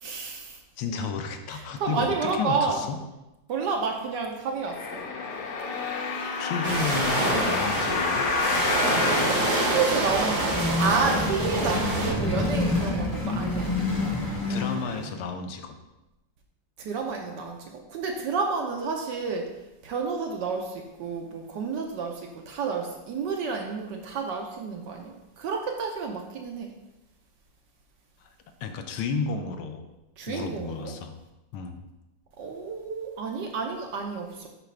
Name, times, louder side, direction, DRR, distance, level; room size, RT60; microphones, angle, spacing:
voice 1, 0.0-0.6 1.5-2.8 3.5-5.1 9.3-13.7 16.8-17.6 17.9-19.5 19.8-26.7 30.2-30.9 32.4-34.5, right 5 dB, 65° right, 2 dB, 1.2 m, -30 dB
voice 2, 0.8-3.0 6.4-8.3 14.3-15.8 28.2-28.3 28.6-29.8 30.3-31.2 31.5-31.8, left 5 dB, 80° left, 7 dB, 1.6 m, -32 dB
sound 1, 4.7-10.6 11.2-11.3, left 4 dB, 65° left, 1.2 m, -29 dB
sound 2, 6.6-12.1, right 2 dB, 85° right, 2.8 m, -27 dB
sound 3, 9.9-15.2, left 2 dB, 25° left, 0.4 m, -28 dB
7.6 x 5.8 x 3.2 m, 0.99 s
omnidirectional pair, 2.3 m